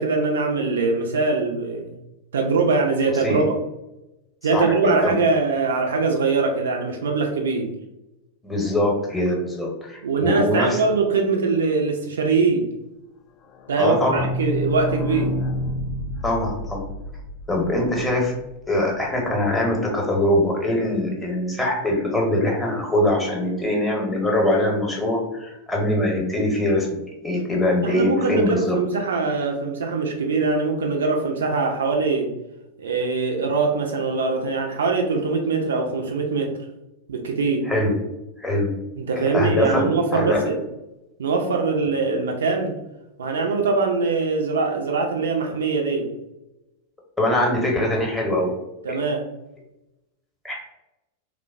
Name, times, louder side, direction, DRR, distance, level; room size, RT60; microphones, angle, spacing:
voice 1, 0.0-1.9 2.3-3.6 4.4-7.7 10.0-12.7 13.7-15.3 27.8-32.3 32.8-36.6 37.1-37.7 39.0-40.6 41.2-42.8 43.2-46.1 48.8-49.2, right 4 dB, 65° right, 2 dB, 0.3 m, -22 dB
voice 2, 4.5-5.1 8.4-10.8 13.8-14.3 16.2-16.8 17.5-18.3 18.7-26.9 27.2-28.8 37.7-37.9 38.4-38.7 39.1-40.4 47.2-48.5 50.4-50.6, left 1 dB, 10° left, -2 dB, 0.7 m, -22 dB
sound 1, 13.4-19.0 19.3-19.4 19.6-19.7 20.0-20.1, left 1 dB, 40° left, 0.3 m, -29 dB
3.0 x 2.0 x 2.3 m, 0.94 s
figure-of-eight pair, 90°, 0 cm